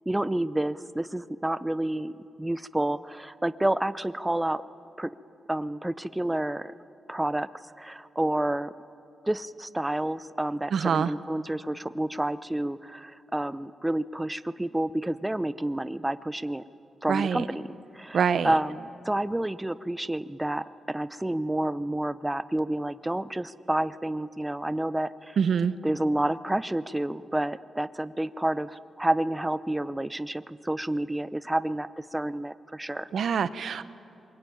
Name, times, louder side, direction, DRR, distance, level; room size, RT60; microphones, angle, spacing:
voice 1, 0.1-2.1 2.4-4.6 5.0-5.1 5.5-6.7 7.1-7.5 7.8-8.7 9.3-16.6 17.0-17.7 17.9-25.4 25.8-33.1, right 1 dB, 10° right, 14 dB, 0.6 m, -29 dB
voice 2, 10.7-11.1 17.1-17.4 18.1-18.5 25.4-25.7 33.1-33.9, right 7 dB, 65° right, 13 dB, 0.8 m, -25 dB
26.5 x 23.0 x 9.2 m, 2.7 s
wide cardioid pair, 115°, 0 cm